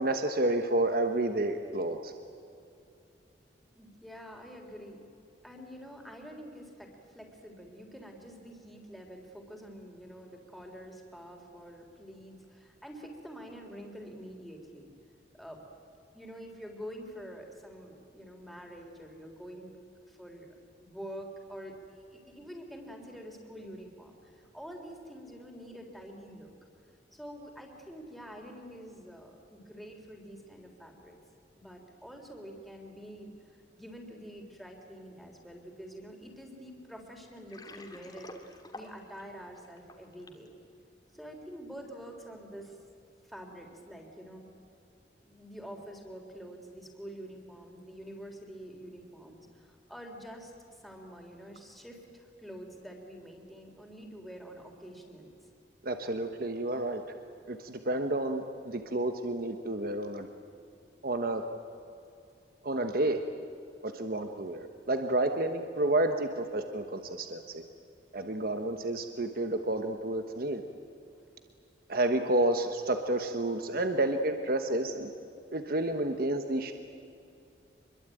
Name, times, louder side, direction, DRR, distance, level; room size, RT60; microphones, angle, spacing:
voice 1, 0.0-2.1 55.8-57.0 57.5-60.3 61.0-61.4 62.6-63.2 63.8-67.6 68.1-70.6 71.9-75.1 75.5-76.7, right 2 dB, 55° right, 6 dB, 1.2 m, -30 dB
voice 2, 3.7-5.1 5.4-14.9 15.3-15.6 16.1-19.7 20.1-20.5 20.8-26.5 27.1-31.2 31.5-40.5 41.1-42.8 43.2-44.4 45.2-55.3, equal, ahead, 1 dB, 3.5 m, -47 dB
Water, 37.3-40.5, left 2 dB, 25° left, 2.2 m, -49 dB
25.5 x 22.5 x 9.2 m, 2.6 s
head